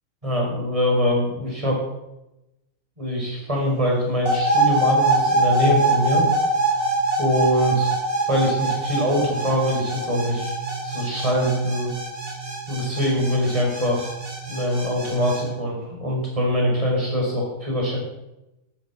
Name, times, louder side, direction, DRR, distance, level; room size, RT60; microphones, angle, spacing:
voice 1, 0.2-1.8 3.0-6.3 7.2-7.9 8.3-10.5 10.8-11.9 12.7-14.1 14.5-18.0, equal, 20° right, -2 dB, 5.5 m, -23 dB
sound 1, 4.3-15.4, right 2 dB, 35° right, 3.7 m, -24 dB
12.5 x 11.0 x 7.5 m, 0.93 s
omnidirectional pair, 1.7 m